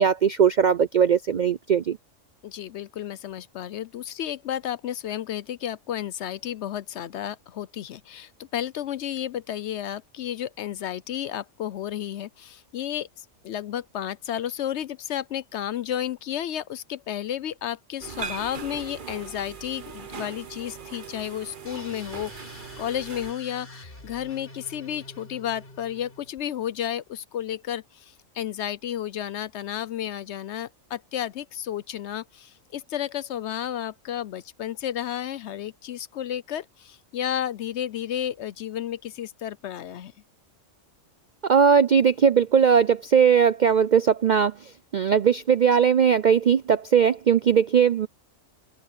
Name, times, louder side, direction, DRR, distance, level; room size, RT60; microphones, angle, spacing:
voice 1, 0.0-2.0 41.4-48.1, right 7 dB, 60° right, 0.4 m, -19 dB
voice 2, 2.4-13.1 13.4-40.1, left 10 dB, 65° left, 0.8 m, -32 dB
sound 1, 18.0-23.3, right 6 dB, 40° right, 1.1 m, -39 dB
sound 2, 21.7-26.4, left 1 dB, 40° left, 4.7 m, -46 dB
open air
omnidirectional pair, 1.4 m